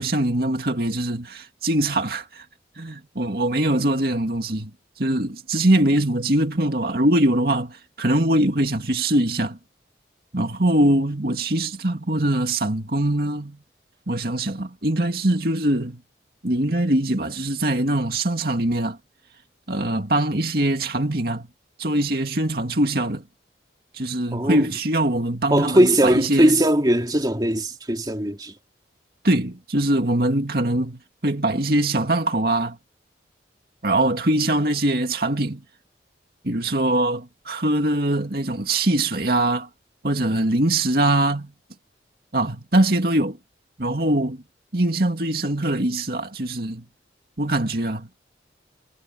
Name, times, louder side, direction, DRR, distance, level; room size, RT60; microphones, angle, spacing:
voice 1, 0.0-2.5 2.8-4.7 5.0-9.6 10.3-13.6 14.1-16.0 16.4-19.0 19.7-21.5 21.8-23.2 23.9-26.6 29.2-32.8 33.8-35.6 36.4-39.7 40.0-41.5 42.3-43.4 43.8-44.4 44.7-46.9 47.4-48.1, right 1 dB, 55° right, 2.4 m, -22 dB
voice 2, 24.3-24.7 25.5-28.5, right 1 dB, 20° right, 2.7 m, -19 dB
head